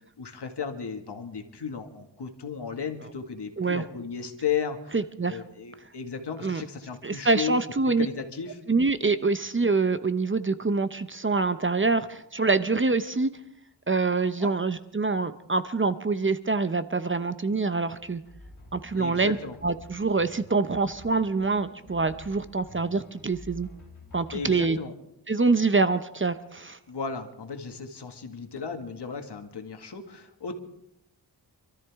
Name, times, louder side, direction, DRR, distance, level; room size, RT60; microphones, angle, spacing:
voice 1, 0.2-5.0 5.2-7.6 8.0-8.6 14.4-14.5 18.9-19.6 24.3-24.9 26.9-30.6, left 6 dB, 65° left, 5 dB, 2.0 m, -34 dB
voice 2, 4.9-5.4 6.4-6.6 7.0-8.1 8.7-13.3 13.9-18.2 18.7-19.4 19.6-23.7 24.1-24.8 25.3-26.8, right 3 dB, 30° right, 12 dB, 0.7 m, -25 dB
sound 1, 18.0-24.6, left 2 dB, 45° left, 4.9 m, -49 dB
26.5 x 13.5 x 3.6 m, 0.77 s
wide cardioid pair, 75°, 43 cm